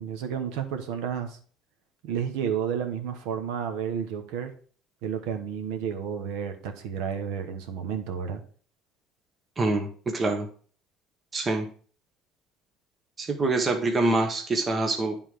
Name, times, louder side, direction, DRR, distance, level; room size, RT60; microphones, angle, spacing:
voice 1, 0.0-1.4 2.0-4.5 5.0-8.4, right 7 dB, 85° right, 6 dB, 1.0 m, -31 dB
voice 2, 9.6-10.5 11.3-11.7 13.2-15.2, right 2 dB, 25° right, 3 dB, 1.0 m, -25 dB
8.9 x 3.7 x 4.7 m, 0.43 s
cardioid pair, 110°, 0 cm